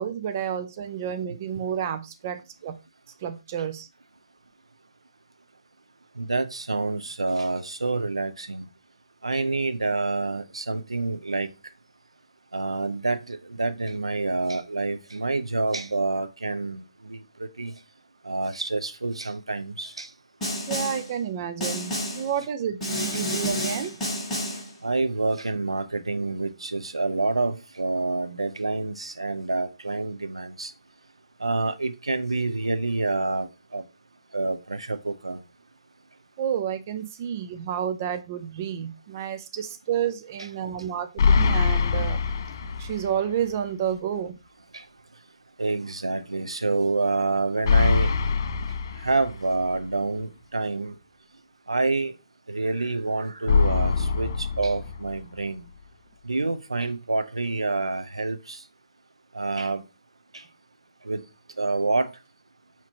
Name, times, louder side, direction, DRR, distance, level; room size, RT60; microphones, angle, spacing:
voice 1, 0.0-2.8 3.2-3.9 20.7-23.9 36.4-42.2 42.8-44.4, right 9 dB, 30° right, 0.4 m, -30 dB
voice 2, 6.2-8.7 9.2-11.5 12.5-17.7 18.2-20.1 23.1-23.2 23.8-23.9 24.8-30.7 31.4-33.8 34.3-35.4 44.7-44.8 45.6-48.1 49.0-51.0 51.7-52.1 52.5-55.7 56.2-58.6 59.3-59.8 61.0-61.2 61.6-62.1, right 3 dB, 80° right, 0.5 m, -27 dB
Snare drum, 20.4-21.1 21.6-22.3 22.8-24.7, equal, 10° left, 1.9 m, -29 dB
sound 1, 41.2-43.2 43.5-43.6 47.6-49.6 53.5-55.4, left 5 dB, 45° left, 0.3 m, -23 dB
6.0 x 2.8 x 2.8 m
figure-of-eight pair, 145°, 3 cm